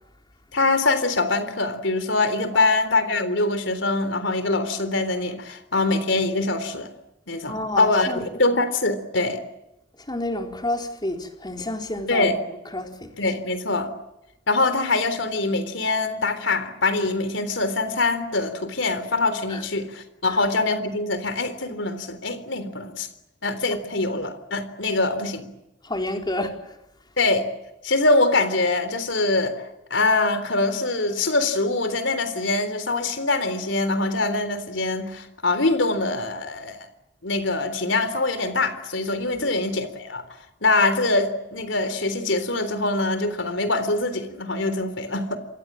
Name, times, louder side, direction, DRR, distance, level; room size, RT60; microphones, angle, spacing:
voice 1, 0.5-6.9 7.3-9.4 12.1-12.4 13.2-13.9 14.5-23.1 23.4-25.5 27.2-27.5 27.8-36.9 37.2-40.2 40.6-45.4, left 2 dB, 90° left, 3.7 m, -23 dB
voice 2, 7.5-8.2 10.1-12.3 12.7-13.1 19.5-19.6 20.3-20.4 25.8-26.7 39.3-39.5, left 1 dB, 25° left, 4.2 m, -30 dB
29.0 x 25.5 x 7.6 m
head